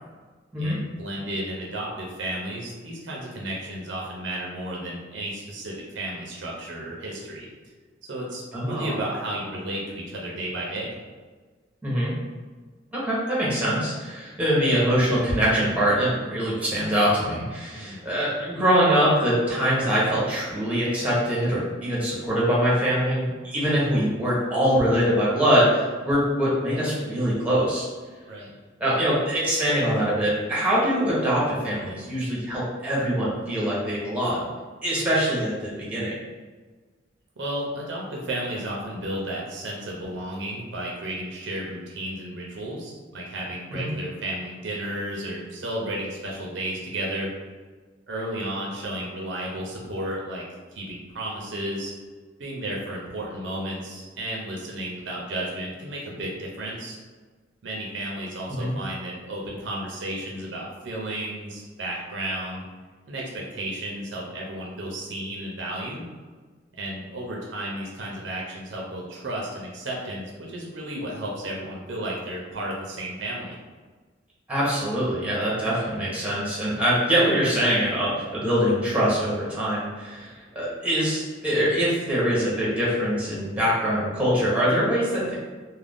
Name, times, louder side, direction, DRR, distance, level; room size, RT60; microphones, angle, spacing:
voice 1, 0.6-7.5 8.1-10.9 17.7-18.1 28.3-28.6 37.4-47.3 48.1-50.4 50.7-51.9 52.4-57.0 57.6-62.6 63.1-66.1 66.7-73.5, right 1 dB, 65° right, -3 dB, 0.6 m, -33 dB
voice 2, 8.5-8.9 11.8-12.1 12.9-27.9 28.8-34.5 34.8-36.2 43.7-43.9 58.5-58.7 74.5-85.3, equal, 5° right, -7 dB, 0.9 m, -23 dB
2.5 x 2.2 x 3.4 m, 1.4 s
head